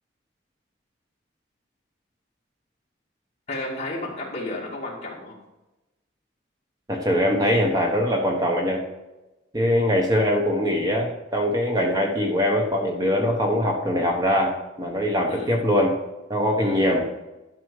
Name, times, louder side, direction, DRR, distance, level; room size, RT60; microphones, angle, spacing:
voice 1, 3.5-5.4 15.3-15.5 16.6-16.9, left 2 dB, 35° left, -3 dB, 2.4 m, -32 dB
voice 2, 6.9-8.8 9.5-15.9 16.3-17.1, equal, 20° right, 1 dB, 1.1 m, -22 dB
11.5 x 6.0 x 4.9 m, 1.0 s
head